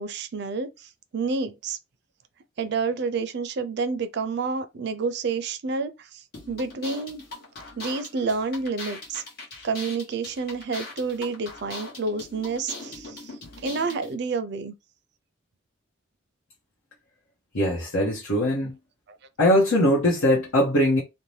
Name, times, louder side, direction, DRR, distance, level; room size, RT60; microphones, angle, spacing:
voice 1, 0.0-1.8 2.6-7.2 7.8-9.2 9.6-13.3 13.6-14.7, right 4 dB, 50° right, 0.4 m, -29 dB
sound 1, 6.3-14.1, left 2 dB, 50° left, 1.1 m, -40 dB
voice 2, 17.5-18.7 19.4-21.0, equal, 80° left, 0.9 m, -21 dB
2.7 x 2.1 x 3.1 m
head